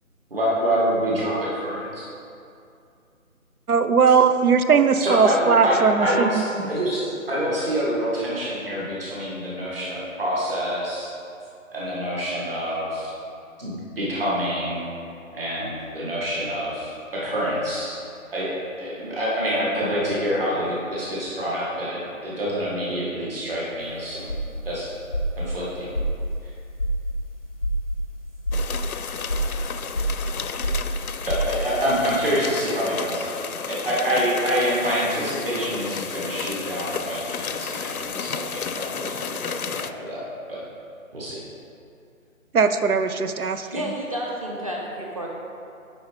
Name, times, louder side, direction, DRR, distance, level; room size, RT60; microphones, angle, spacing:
voice 1, 0.3-2.0 5.0-11.1 11.7-13.1 13.6-14.8 15.3-18.0 18.3-18.5 18.8-24.3 24.6-24.9 25.4-25.9 31.3-40.2 40.5-40.6 41.1-41.4, equal, 40° right, -7 dB, 2.0 m, -26 dB
voice 2, 3.7-6.7 42.5-43.7, right 5 dB, 85° right, 9 dB, 0.7 m, -19 dB
sound 1, 23.8-31.9, equal, 25° left, 0.6 m, -28 dB
sound 2, 28.5-39.9, left 6 dB, 80° left, 0.6 m, -32 dB
voice 3, 43.7-45.3, equal, 25° right, -2 dB, 0.8 m, -30 dB
9.9 x 4.8 x 5.2 m, 2.5 s
figure-of-eight pair, 160°, 43 cm